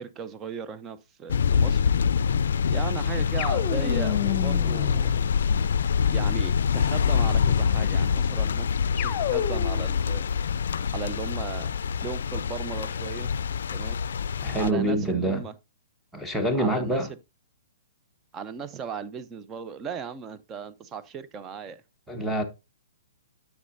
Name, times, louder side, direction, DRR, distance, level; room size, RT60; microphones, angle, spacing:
voice 1, 0.0-1.8 2.7-5.2 6.1-8.7 9.0-10.3 10.9-11.7 12.0-13.3 13.7-14.0 14.6-15.5 16.6-17.2 18.3-21.8, right 6 dB, 20° right, 0.6 m, -37 dB
sound 1, 1.3-14.7, left 6 dB, 75° left, 0.4 m, -25 dB
sound 2, 3.4-5.9 9.0-10.0, left 10 dB, 35° left, 0.9 m, -30 dB
voice 2, 14.4-15.4 16.1-17.1 22.1-22.4, right 1 dB, ahead, 1.2 m, -26 dB
9.6 x 7.3 x 2.7 m
hypercardioid pair, 145°, 0 cm